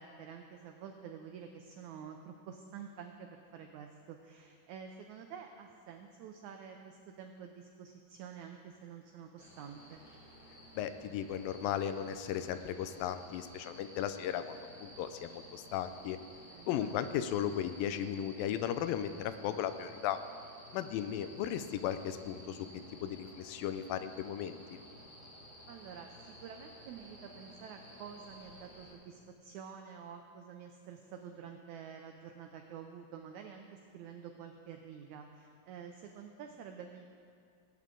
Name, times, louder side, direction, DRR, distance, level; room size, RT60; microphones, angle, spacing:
voice 1, 0.0-10.0 16.5-17.0 21.4-21.6 25.7-37.0, right 7 dB, 85° right, 4 dB, 1.6 m, -49 dB
sound 1, 9.4-28.9, equal, 20° left, 1.6 m, -54 dB
voice 2, 10.8-16.2 16.7-20.2 20.7-24.8, left 10 dB, 85° left, 11 dB, 2.3 m, -36 dB
18.5 x 8.9 x 3.8 m, 2.3 s
omnidirectional pair, 4.1 m